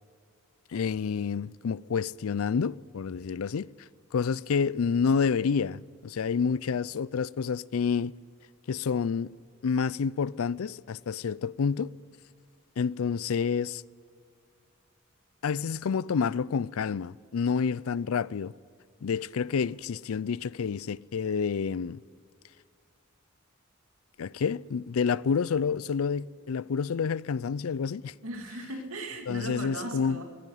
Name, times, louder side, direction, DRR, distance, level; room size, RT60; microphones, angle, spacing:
voice 1, 0.7-3.7 4.1-8.1 8.7-9.3 9.6-11.9 12.8-13.8 15.4-18.5 19.0-22.0 24.2-28.1 29.3-30.2, left 6 dB, 85° left, 0.4 m, -29 dB
voice 2, 28.2-30.2, right 1 dB, 80° right, 2.6 m, -38 dB
18.0 x 15.0 x 9.3 m
head